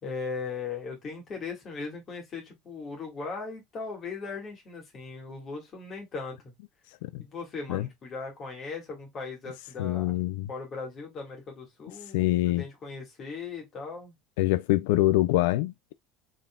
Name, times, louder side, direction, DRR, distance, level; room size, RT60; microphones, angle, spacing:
voice 1, 0.0-6.5 7.2-10.2 10.5-14.1, left 4 dB, 25° left, 2.1 m, -38 dB
voice 2, 9.8-10.5 12.1-12.6 14.4-15.9, left 17 dB, 90° left, 0.3 m, -25 dB
4.0 x 3.7 x 2.3 m
cardioid pair, 170°, 0 cm